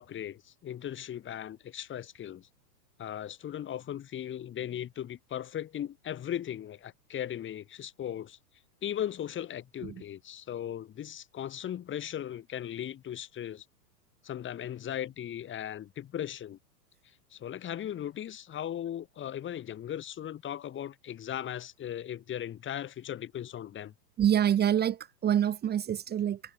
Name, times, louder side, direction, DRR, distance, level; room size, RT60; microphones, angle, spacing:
voice 1, 0.0-2.5 3.0-8.4 8.8-13.6 14.2-16.6 17.3-23.9, left 10 dB, 25° left, 6.8 m, -38 dB
voice 2, 24.2-26.4, right 10 dB, 20° right, 2.1 m, -26 dB
hypercardioid pair, 135°, 49 cm